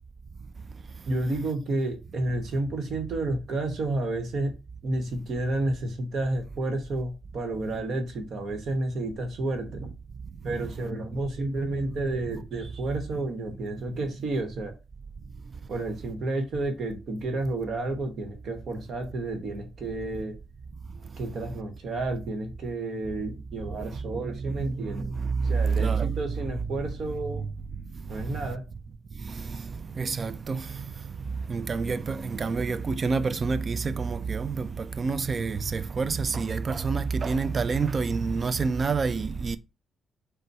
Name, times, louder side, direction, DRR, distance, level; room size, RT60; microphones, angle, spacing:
voice 1, 1.1-4.5 4.8-9.9 10.4-14.7 15.7-20.3 21.2-27.5 28.1-28.6, right 2 dB, 60° right, 1.1 m, -31 dB
voice 2, 24.4-25.5 25.8-26.1 29.5-29.6 30.0-30.8 31.5-39.6, right 4 dB, 40° right, 0.3 m, -28 dB
4.0 x 2.2 x 4.5 m
cardioid pair, 90°, 0 cm